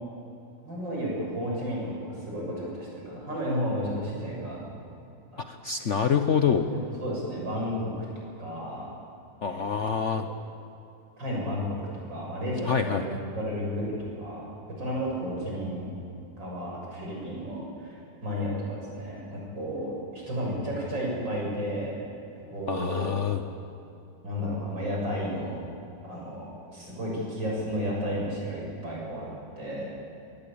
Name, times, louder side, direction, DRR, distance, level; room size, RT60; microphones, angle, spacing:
voice 1, 0.6-4.6 5.3-5.5 5.8-5.9 6.7-8.0 8.4-8.9 9.4-9.8 10.1-10.4 11.2-11.8 12.1-14.5 14.8-15.9 16.4-21.9 22.5-23.1 24.2-25.6 26.0-29.3 29.6-29.9, equal, 75° right, -3 dB, 7.8 m, -32 dB
voice 2, 5.5-6.7 9.4-10.3 12.6-13.2 22.7-23.4, left 7 dB, 55° left, 7 dB, 0.9 m, -26 dB
22.5 x 18.5 x 8.6 m, 2.7 s
omnidirectional pair, 2.0 m